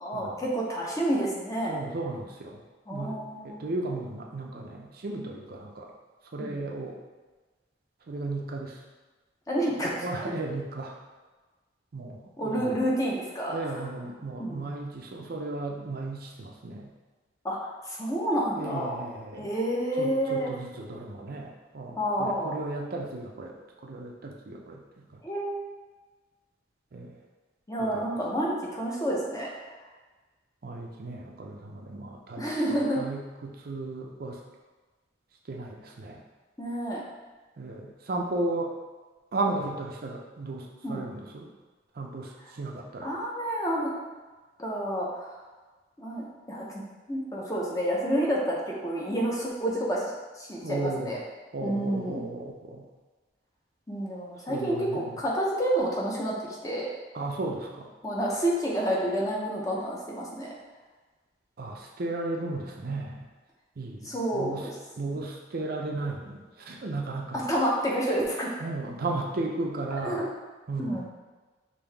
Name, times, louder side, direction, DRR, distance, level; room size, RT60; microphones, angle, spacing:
voice 1, 0.0-1.8 2.9-3.6 6.4-6.6 9.5-9.9 12.4-13.8 14.4-14.7 17.4-19.1 19.3-20.5 22.0-22.5 25.2-25.7 27.7-29.8 32.4-33.0 36.6-37.0 40.8-41.0 43.0-43.9 44.6-45.3 46.0-46.8 47.1-50.0 50.4-51.2 51.6-52.2 53.9-56.9 58.0-60.5 64.0-64.8 65.1-65.2 67.3-68.6 70.0-70.3 70.8-71.0, right 1 dB, 20° left, -3 dB, 0.7 m, -29 dB
voice 2, 1.7-2.6 2.9-5.9 6.3-7.0 8.1-8.8 10.0-10.9 11.9-12.7 13.5-16.9 18.6-19.5 20.0-23.5 23.8-25.2 26.9-27.1 27.8-28.1 30.6-32.4 33.0-34.4 35.5-36.2 37.6-38.7 39.3-41.5 42.0-43.1 50.6-51.1 51.5-52.9 54.5-55.1 57.1-57.9 61.6-63.2 63.8-64.7 65.0-67.4 68.6-70.2 70.7-71.0, right 2 dB, 55° right, 0 dB, 0.5 m, -35 dB
5.3 x 2.7 x 3.4 m, 1.3 s
head